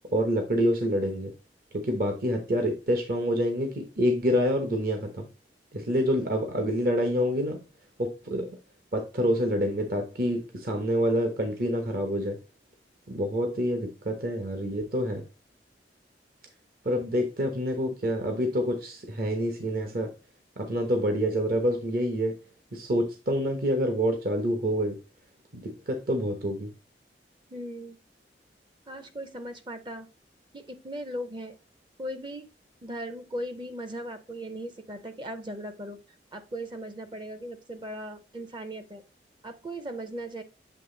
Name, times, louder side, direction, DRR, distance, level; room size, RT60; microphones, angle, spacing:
voice 1, 0.1-1.3 1.7-5.3 5.7-7.6 8.0-8.6 8.9-12.4 13.1-15.2 16.8-20.1 20.6-22.3 22.7-25.0 25.5-26.7, equal, 55° right, 4 dB, 0.9 m, -27 dB
voice 2, 27.5-28.0 28.9-30.1 30.5-31.6 32.0-32.5 32.8-36.0 36.3-39.0 39.4-40.4, right 1 dB, 25° right, 10 dB, 0.5 m, -38 dB
7.8 x 3.2 x 3.8 m, 0.32 s
head